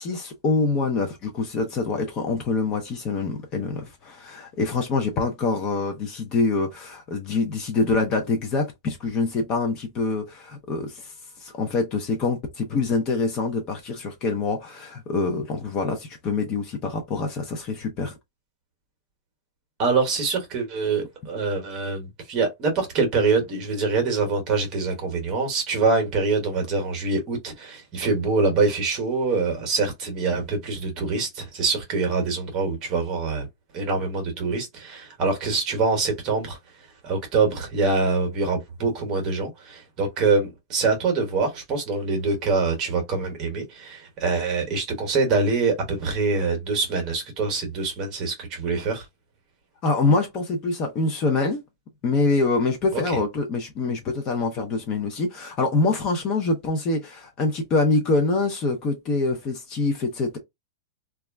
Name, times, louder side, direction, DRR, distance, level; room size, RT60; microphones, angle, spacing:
voice 1, 0.0-11.1 11.4-18.1 49.8-51.6 52.0-60.4, left 3 dB, 25° left, 0.5 m, -25 dB
voice 2, 19.8-33.5 33.7-36.6 37.0-49.0 52.9-53.2, right 4 dB, 25° right, 0.9 m, -24 dB
2.3 x 2.0 x 3.3 m
supercardioid pair, 165°, 2 cm